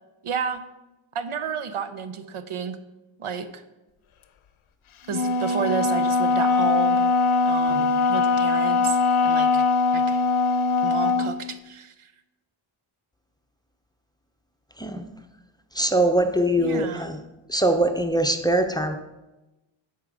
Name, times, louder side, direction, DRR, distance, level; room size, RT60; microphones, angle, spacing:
voice 1, 0.2-0.6 1.1-2.8 3.2-3.6 5.1-7.0 7.4-9.0 9.2-9.6 9.9-10.2 10.8-11.9 16.6-17.1, right 6 dB, 85° right, 10 dB, 0.8 m, -31 dB
Wind instrument woodwind instrument, 5.1-11.4, left 4 dB, 80° left, 0.7 m, -21 dB
voice 2, 14.8-15.1 15.7-17.2 17.5-19.0, right 1 dB, 10° left, 7 dB, 0.5 m, -22 dB
8.4 x 4.6 x 6.2 m, 1.0 s
wide cardioid pair, 90°, 49 cm